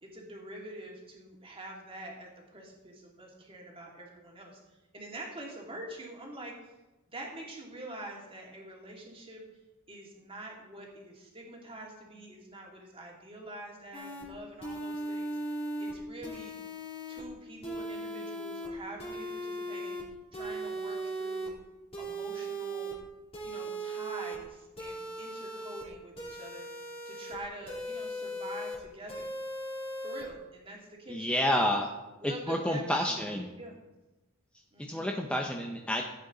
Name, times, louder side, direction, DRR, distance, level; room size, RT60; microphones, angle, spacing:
voice 1, 0.0-6.6 7.1-9.4 9.9-16.5 17.1-20.0 20.3-21.5 22.0-22.9 23.4-29.3 30.0-31.7 32.2-33.7 34.7-35.0, right 1 dB, 25° right, -1 dB, 2.5 m, -46 dB
sound 1, 13.9-14.2 14.6-15.9 16.2-17.2 17.6-18.7 19.0-20.0 20.3-21.5 21.9-22.9 23.3-24.4 24.8-25.8 26.2-27.3 27.7-28.8 29.1-30.2, right 1 dB, 25° left, 2.8 m, -38 dB
voice 2, 31.1-31.9 32.2-33.5 34.8-36.0, left 1 dB, 5° left, 1 dB, 0.7 m, -29 dB
15.5 x 8.3 x 3.9 m, 1.1 s
head